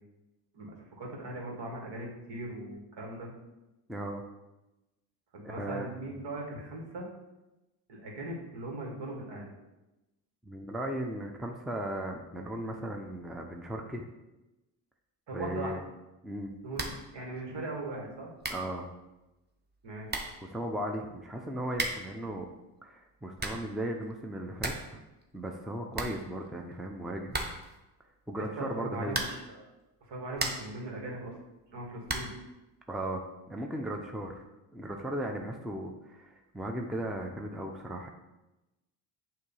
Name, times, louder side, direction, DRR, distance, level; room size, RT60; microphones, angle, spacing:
voice 1, 0.5-3.3 5.3-7.1 7.9-9.5 15.3-15.8 16.6-18.3 19.8-20.3 28.4-29.7 30.0-31.4 31.7-32.3, right 2 dB, 60° right, -1 dB, 2.0 m, -39 dB
voice 2, 3.9-4.2 5.6-6.1 10.5-14.1 15.3-15.8 16.2-16.5 18.5-18.9 20.5-22.5 22.8-25.0 25.3-27.4 28.3-29.2 32.9-34.4 34.7-38.1, right 1 dB, ahead, 2 dB, 0.6 m, -36 dB
sound 1, 16.7-17.1 17.4-17.5 18.1-18.2 18.4-18.7 19.7-19.8 20.1-20.4 21.7-22.2 23.1-23.7 24.1-24.2 24.4-25.0 25.2-25.3 25.6-25.7 25.9-26.7 27.3-27.8 29.1-29.6 30.0-30.8 32.0-32.4, right 2 dB, 20° right, 1.0 m, -35 dB
6.5 x 2.8 x 5.5 m, 1.0 s
supercardioid pair, 65°, 49 cm